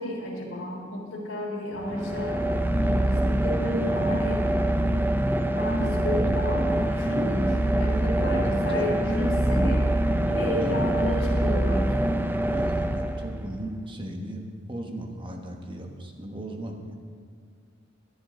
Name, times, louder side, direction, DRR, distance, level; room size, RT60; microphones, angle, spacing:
voice 1, 0.0-2.4 2.8-4.5 5.6-9.8 10.3-11.9, left 1 dB, 70° left, -5 dB, 3.5 m, -32 dB
sound 1, 1.8-13.6, right 1 dB, 10° right, 0.5 m, -24 dB
voice 2, 7.9-8.9 10.6-10.8 12.3-17.0, right 1 dB, 25° right, 2 dB, 1.3 m, -37 dB
16.5 x 11.0 x 3.9 m, 2.1 s
head